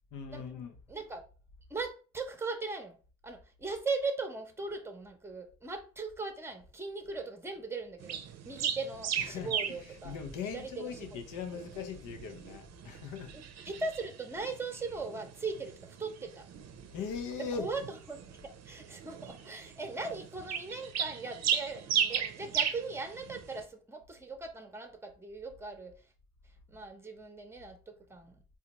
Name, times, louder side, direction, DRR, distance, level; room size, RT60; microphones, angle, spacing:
voice 1, 0.1-0.8 9.2-9.5 10.0-13.3 16.9-17.7, left 6 dB, 90° left, 0.7 m, -39 dB
voice 2, 0.9-1.2 1.7-3.0 3.2-8.2 8.4-10.2 10.5-11.2 13.3-16.5 17.4-26.1 26.7-28.4, right 3 dB, 10° right, 0.7 m, -39 dB
sound 1, 8.0-23.6, right 8 dB, 60° right, 0.6 m, -37 dB
3.9 x 2.4 x 2.9 m
cardioid pair, 90°, 30 cm